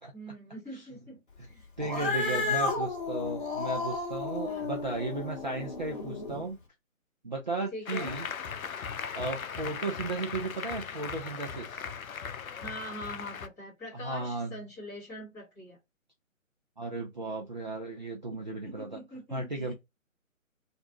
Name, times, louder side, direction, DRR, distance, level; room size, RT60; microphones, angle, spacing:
voice 1, 0.1-2.7 4.4-4.7 7.7-8.2 12.6-15.8 18.6-19.7, equal, 5° left, 1.1 m, -43 dB
Cat, 1.8-6.4, left 4 dB, 40° left, 0.8 m, -33 dB
voice 2, 1.8-6.6 7.2-8.3 9.1-11.8 13.9-14.6 16.8-19.0 19.3-19.7, right 3 dB, 35° right, 0.5 m, -35 dB
Applause, 7.9-13.5, left 6 dB, 85° left, 0.5 m, -38 dB
2.5 x 2.2 x 3.6 m
figure-of-eight pair, 140°, 41 cm